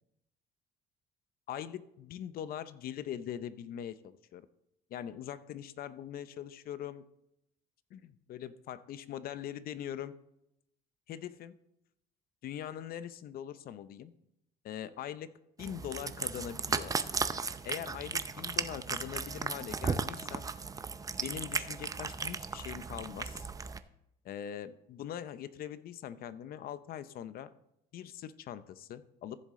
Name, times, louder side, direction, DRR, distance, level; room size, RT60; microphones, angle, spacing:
voice 1, 1.5-4.5 4.9-7.0 7.9-10.1 11.1-11.6 12.4-14.1 14.6-15.3 15.6-16.9 17.6-20.5 21.2-23.5 24.2-27.5 27.9-29.4, left 10 dB, 60° left, 14 dB, 0.7 m, -42 dB
Cat, 15.6-23.8, right 5 dB, 20° right, 0.5 m, -36 dB
14.0 x 7.4 x 3.7 m, 0.81 s
cardioid pair, 110°, 17 cm